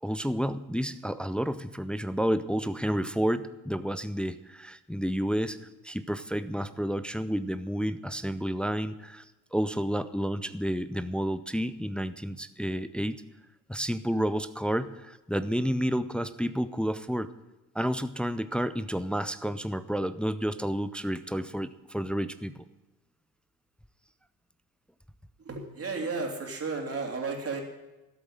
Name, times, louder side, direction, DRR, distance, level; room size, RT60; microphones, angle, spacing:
voice 1, 0.0-5.6 5.8-9.2 9.5-13.2 13.7-17.3 17.7-22.6, equal, ahead, 13 dB, 0.5 m, -30 dB
voice 2, 25.4-27.6, right 4 dB, 30° right, 2 dB, 3.2 m, -33 dB
13.5 x 8.0 x 8.9 m, 1.1 s
figure-of-eight pair, 55°, 49 cm